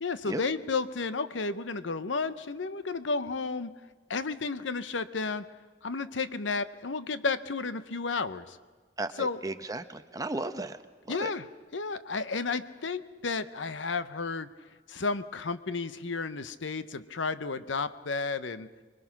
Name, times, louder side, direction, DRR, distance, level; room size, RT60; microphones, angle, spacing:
voice 1, 0.0-3.7 4.1-5.4 5.8-8.6 9.2-9.4 11.1-11.4 11.7-14.5 14.9-18.7, left 4 dB, 75° left, 13 dB, 0.8 m, -32 dB
voice 2, 9.0-10.8 11.1-11.3, right 2 dB, 20° right, 9 dB, 0.9 m, -35 dB
25.5 x 21.0 x 6.0 m, 1.4 s
head